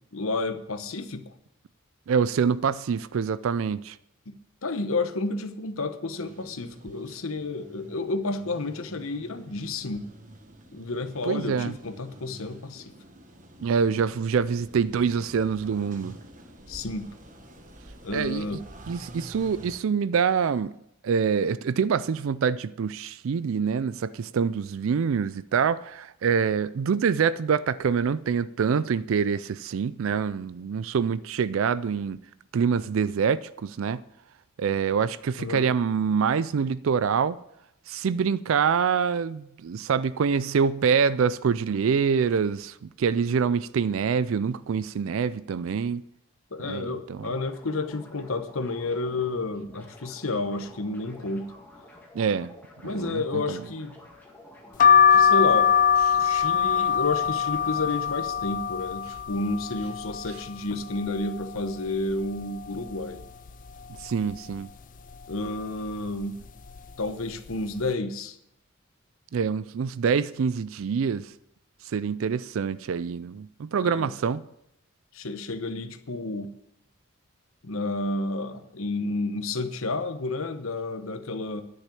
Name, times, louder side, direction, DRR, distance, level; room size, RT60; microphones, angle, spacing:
voice 1, 0.0-1.3 4.3-4.4 4.6-10.1 10.7-12.9 16.7-17.1 18.0-18.6 35.4-35.6 46.5-51.5 52.8-53.9 55.1-55.7 56.2-63.2 65.3-66.4 67.0-68.4 73.8-74.1 75.1-76.5 77.6-81.6, left 2 dB, 75° left, 1.0 m, -31 dB
voice 2, 2.1-4.0 11.2-11.7 13.6-16.2 18.1-18.6 18.9-20.7 21.0-32.2 32.5-34.0 34.6-37.4 37.9-46.0 46.6-47.3 52.1-52.5 52.8-53.6 56.1-56.2 64.0-64.7 69.3-71.3 71.8-74.4, right 6 dB, 70° right, 0.4 m, -25 dB
sound 1, 6.2-19.8, right 1 dB, 35° right, 1.2 m, -48 dB
sound 2, 47.1-58.2, left 1 dB, 10° left, 1.8 m, -50 dB
sound 3, 54.8-60.5 60.9-61.7 62.1-62.2 62.4-63.5 64.0-64.3 65.1-65.4 66.2-66.5 66.7-66.9, left 8 dB, 40° left, 0.4 m, -22 dB
10.5 x 6.5 x 8.5 m
head